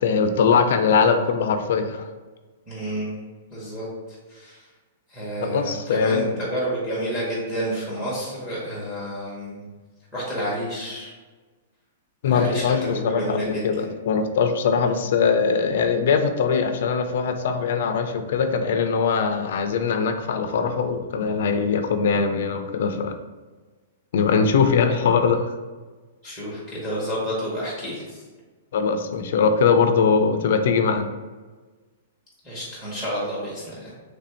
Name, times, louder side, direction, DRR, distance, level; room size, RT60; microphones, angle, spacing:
voice 1, 0.0-2.0 5.4-6.4 12.2-23.1 24.1-25.4 28.7-31.1, left 5 dB, 55° left, 7 dB, 0.3 m, -21 dB
voice 2, 2.7-3.1 3.5-3.9 4.3-4.7 5.1-9.7 10.1-11.1 12.2-13.9 26.2-28.2 32.4-33.9, equal, 10° right, -6 dB, 0.9 m, -30 dB
3.2 x 2.5 x 4.3 m, 1.3 s
supercardioid pair, 175°, 0 cm